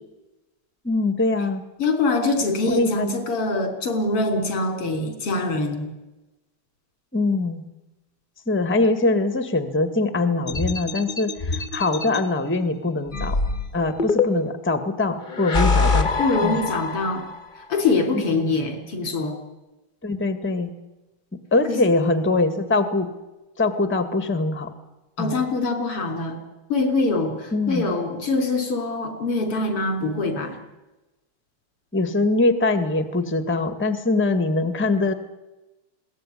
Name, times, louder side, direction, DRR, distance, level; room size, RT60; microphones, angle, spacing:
voice 1, 0.8-1.6 2.7-3.1 7.1-7.6 8.5-13.4 13.7-16.1 16.4-16.6 18.1-18.5 20.0-20.7 21.3-23.1 23.6-24.7 25.2-25.3 27.5-27.9 31.9-35.1, left 2 dB, 5° left, 10 dB, 1.3 m, -23 dB
voice 2, 1.8-5.9 16.2-17.3 17.7-19.4 21.7-21.8 25.2-26.4 26.7-30.6, left 3 dB, 90° left, 6 dB, 4.4 m, -24 dB
sound 1, 10.5-12.2 13.1-14.6 15.3-17.4, left 4 dB, 25° left, 1.3 m, -24 dB
21.5 x 17.5 x 9.9 m, 1.0 s
omnidirectional pair, 2.4 m